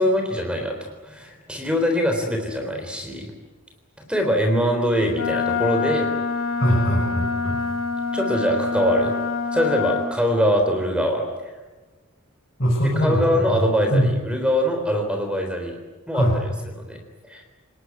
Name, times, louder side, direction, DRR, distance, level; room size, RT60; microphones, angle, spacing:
voice 1, 0.0-3.3 4.1-6.1 8.1-9.2 9.5-11.5 13.0-15.8 16.1-16.3 16.6-17.0 17.2-17.4, equal, 5° right, 3 dB, 3.7 m, -23 dB
Wind instrument woodwind instrument, 5.1-10.1, left 5 dB, 85° left, 6.4 m, -26 dB
voice 2, 6.6-7.6 12.6-13.2 13.5-13.6 13.9-14.1 16.1-16.3, equal, 45° left, -4 dB, 7.1 m, -21 dB
29.0 x 19.5 x 9.6 m, 1.2 s
head